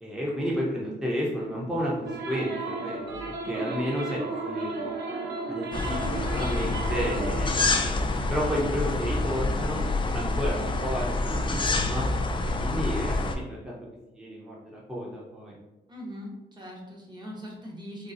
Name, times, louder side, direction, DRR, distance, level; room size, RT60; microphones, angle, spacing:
voice 1, 0.0-4.8 5.5-6.0 6.3-9.8 10.1-12.1 12.6-13.2 13.5-13.7 14.1-15.5, equal, 5° right, -5 dB, 0.9 m, -32 dB
sound 1, 2.1-7.5, right 3 dB, 70° right, 0.6 m, -34 dB
sound 2, 5.7-13.4, left 2 dB, 25° left, 0.4 m, -27 dB
voice 2, 15.9-18.1, equal, 25° right, -2 dB, 1.1 m, -41 dB
3.8 x 2.3 x 2.6 m, 0.99 s
cardioid pair, 70°, 19 cm